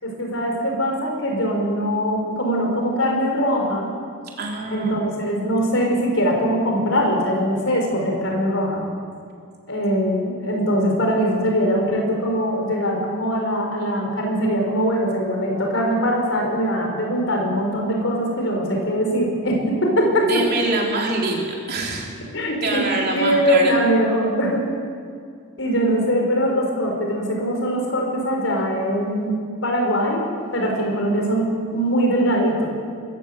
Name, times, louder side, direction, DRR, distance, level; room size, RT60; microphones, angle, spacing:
voice 1, 0.0-3.9 4.7-8.8 9.7-20.4 22.3-22.8 23.1-24.7 25.6-29.3 29.6-32.7, equal, 70° left, 1 dB, 5.3 m, -22 dB
voice 2, 4.4-4.9 20.2-22.2 22.6-23.8, right 2 dB, 50° right, -1 dB, 3.8 m, -25 dB
22.0 x 14.5 x 8.2 m, 2.2 s
head